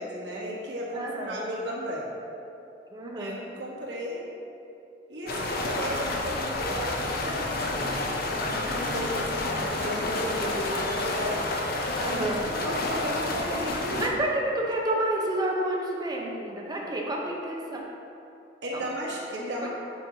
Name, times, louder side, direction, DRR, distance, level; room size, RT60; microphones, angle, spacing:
voice 1, 0.0-2.1 3.2-4.2 5.1-11.5 12.1-12.2 12.6-14.2 18.6-19.7, equal, 80° right, -4 dB, 1.2 m, -34 dB
voice 2, 0.9-1.5 2.9-3.4 5.2-5.6 12.0-12.6 14.0-17.8 18.7-18.8, right 1 dB, 25° right, -2 dB, 0.8 m, -30 dB
sound 1, 5.3-14.1, left 2 dB, 60° left, 0.6 m, -30 dB
9.0 x 4.2 x 2.8 m, 2.7 s
head